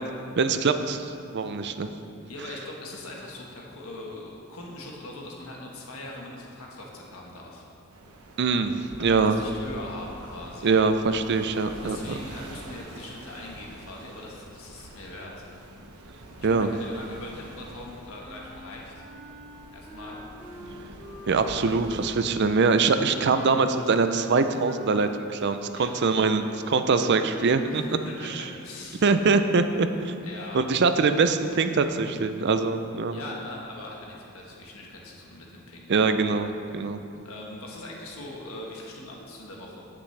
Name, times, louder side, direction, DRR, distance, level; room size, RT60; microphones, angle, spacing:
voice 1, 0.4-1.9 8.4-9.4 10.6-12.0 16.4-16.7 21.3-27.8 28.2-28.4 29.0-30.1 30.5-33.2 35.9-37.0, right 4 dB, 50° right, 9 dB, 0.4 m, -23 dB
voice 2, 2.3-7.6 9.0-10.8 11.6-15.4 16.4-19.1 19.7-20.2 25.7-25.9 27.7-29.0 30.2-30.6 33.1-35.9 36.8-36.9 37.2-39.8, left 2 dB, 70° left, -2 dB, 1.3 m, -41 dB
sound 1, 7.9-22.1, right 1 dB, 90° right, 0.9 m, -45 dB
Wind instrument woodwind instrument, 18.2-22.4 23.1-28.5, equal, ahead, 1.1 m, -45 dB
16.0 x 6.1 x 3.3 m, 2.6 s
head